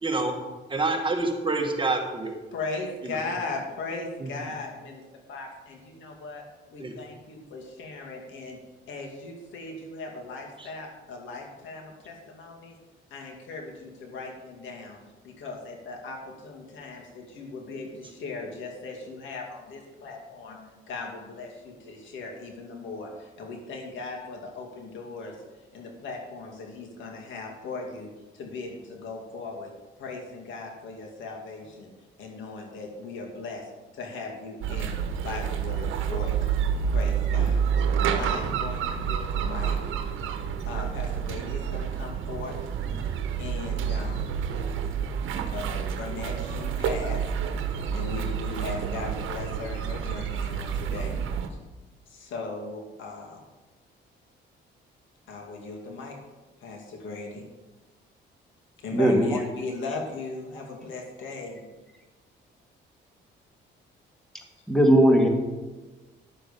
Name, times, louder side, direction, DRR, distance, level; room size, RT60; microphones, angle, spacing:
voice 1, 0.0-0.3 0.7-2.4 3.1-3.2 4.2-4.3 6.8-6.9 10.6-10.7, right 3 dB, 25° right, 3 dB, 1.6 m, -27 dB
voice 2, 2.5-5.0 5.3-6.4 6.7-8.6 8.9-12.8 13.1-15.0 15.2-25.4 25.7-29.7 30.0-31.9 32.2-34.9 35.2-36.6 36.9-39.9 40.4-42.6 43.4-44.3 45.5-47.3 47.7-51.2 51.5-51.6 52.1-53.4 55.3-56.2 56.6-57.5 58.8-61.6, left 3 dB, 75° left, 0 dB, 2.3 m, -38 dB
sound 1, 34.6-51.5, right 7 dB, 85° right, 1.0 m, -29 dB
voice 3, 58.9-59.4 64.7-65.3, right 1 dB, ahead, 2 dB, 1.9 m, -18 dB
11.0 x 7.0 x 5.3 m, 1.2 s
cardioid pair, 90°, 20 cm